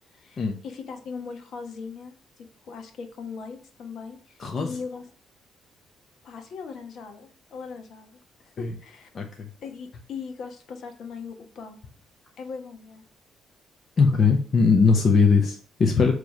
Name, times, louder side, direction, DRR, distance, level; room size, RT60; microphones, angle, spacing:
voice 1, 0.0-5.1 6.2-9.1 9.6-11.8 12.4-13.0, left 5 dB, 65° left, 5 dB, 1.3 m, -39 dB
voice 2, 4.4-4.7 8.6-8.7 9.1-9.5 14.0-16.1, left 5 dB, 45° left, 2 dB, 0.9 m, -20 dB
6.9 x 3.3 x 5.3 m, 0.43 s
cardioid pair, 90°, 0 cm